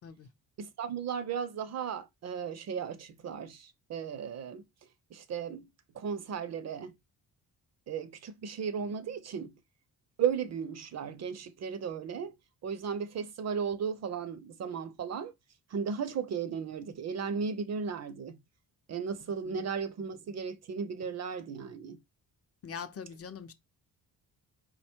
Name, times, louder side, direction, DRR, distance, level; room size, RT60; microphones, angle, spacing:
voice 1, 0.6-4.6 5.1-5.7 5.9-7.0 7.9-9.5 10.2-12.3 12.6-15.3 15.7-18.4 18.9-22.0, right 6 dB, 45° right, 0.5 m, -35 dB
voice 2, 22.6-23.5, left 6 dB, 40° left, 0.6 m, -42 dB
4.9 x 2.2 x 4.3 m
cardioid pair, 175°, 38 cm